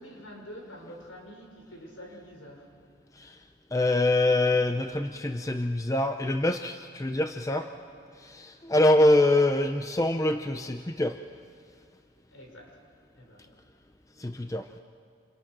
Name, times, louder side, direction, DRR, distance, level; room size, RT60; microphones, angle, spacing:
voice 1, 0.0-2.7 7.5-7.7 12.3-12.8 13.1-13.6, left 1 dB, 75° left, 1 dB, 5.9 m, -46 dB
voice 2, 3.7-7.6 8.2-11.2 14.2-14.8, left 1 dB, 15° left, 7 dB, 0.6 m, -25 dB
30.0 x 28.0 x 6.1 m, 2.2 s
head